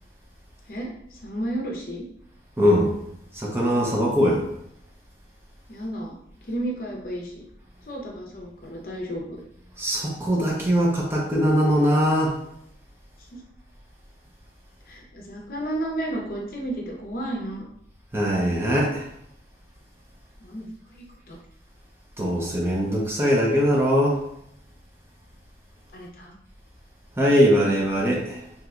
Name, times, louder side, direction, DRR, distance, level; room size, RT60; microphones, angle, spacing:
voice 1, 0.7-2.1 5.7-6.2 6.5-7.5 7.8-9.4 13.3-13.4 14.9-17.6 20.4-21.4 25.9-26.4, right 1 dB, 50° left, 0 dB, 0.6 m, -32 dB
voice 2, 2.6-3.0 3.3-4.5 9.8-12.4 18.1-19.1 22.2-24.2 27.2-28.4, equal, 15° right, -3 dB, 0.5 m, -21 dB
2.8 x 2.2 x 3.5 m, 0.76 s
head